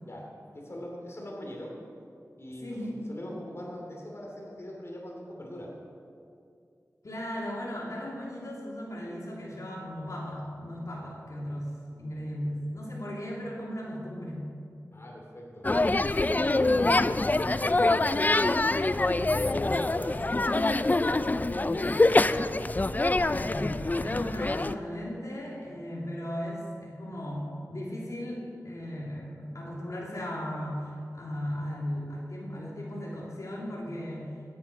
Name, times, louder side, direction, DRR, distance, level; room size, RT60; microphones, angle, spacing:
voice 1, 0.0-1.8 2.4-2.8 3.1-5.7 14.9-15.7 16.3-17.0 17.4-18.1 18.9-22.3, left 1 dB, 45° left, -2 dB, 2.7 m, -41 dB
voice 2, 2.6-2.9 7.0-14.5 23.3-34.4, equal, 60° left, -4 dB, 2.7 m, -36 dB
sound 1, 15.6-24.8, left 2 dB, 30° left, 0.4 m, -25 dB
16.0 x 8.6 x 5.8 m, 2.4 s
wide cardioid pair, 60°, 6 cm